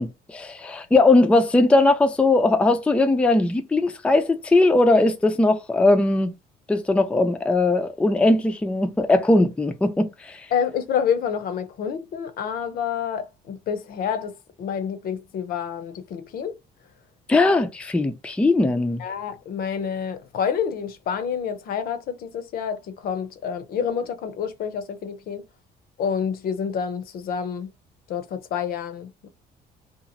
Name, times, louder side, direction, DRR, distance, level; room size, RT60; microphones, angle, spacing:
voice 1, 0.0-6.3 6.7-10.5 17.3-19.0, left 2 dB, 5° left, 0.3 m, -19 dB
voice 2, 10.5-16.5 19.0-25.4 26.0-27.7 28.1-29.3, left 7 dB, 60° left, 0.6 m, -28 dB
2.9 x 2.4 x 2.5 m
cardioid pair, 110°, 17 cm